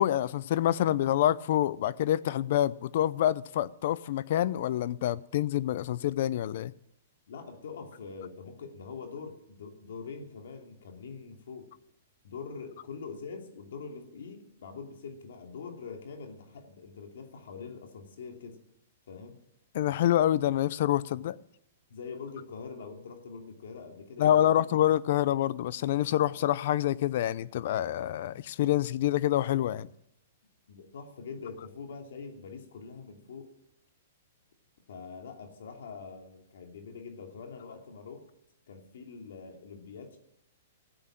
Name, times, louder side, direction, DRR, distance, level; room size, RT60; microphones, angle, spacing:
voice 1, 0.0-6.7 19.7-21.4 24.2-29.9, left 12 dB, 55° left, 0.6 m, -27 dB
voice 2, 7.3-11.7 12.2-18.6 19.1-19.4 21.1-21.3 21.9-24.7 30.7-33.5 34.9-38.2 38.7-40.2, left 5 dB, 75° left, 2.7 m, -44 dB
15.5 x 8.0 x 7.6 m
hypercardioid pair, 145°, 0 cm